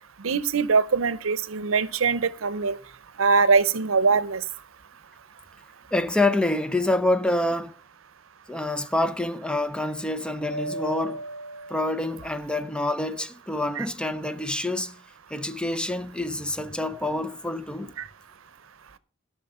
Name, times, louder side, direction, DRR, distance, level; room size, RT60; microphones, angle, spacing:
voice 1, 0.2-2.8 3.2-4.4 13.8-13.9, right 5 dB, 80° right, 0.7 m, -22 dB
voice 2, 5.9-7.7 8.5-11.2 11.7-15.0 15.3-17.9, left 1 dB, 5° left, 0.5 m, -27 dB
Mallet percussion, 10.5-12.6, right 1 dB, 85° left, 1.8 m, -36 dB
12.5 x 6.0 x 5.5 m
head